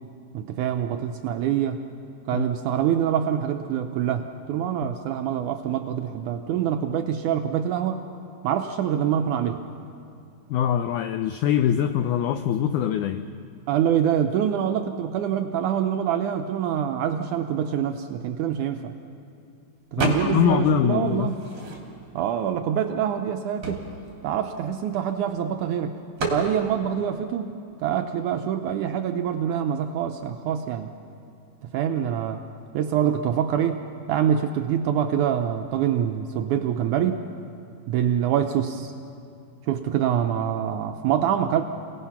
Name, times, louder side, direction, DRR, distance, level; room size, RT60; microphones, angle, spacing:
voice 1, 0.3-1.8 2.3-8.0 8.4-9.6 13.7-18.9 19.9-21.4 22.1-23.8 24.2-26.0 26.3-31.0 31.7-32.4 32.7-33.8 34.1-37.2 37.9-38.9 39.7-41.7, right 9 dB, 80° right, 6 dB, 1.8 m, -25 dB
voice 2, 10.5-13.3 20.0-21.3, left 10 dB, 85° left, 9 dB, 1.7 m, -23 dB
sound 1, 20.0-20.6 20.9-22.2 22.8-22.9 23.1-25.3 26.2-26.5, right 2 dB, 45° right, 3.7 m, -31 dB
28.0 x 18.0 x 5.8 m, 2.6 s
omnidirectional pair, 4.2 m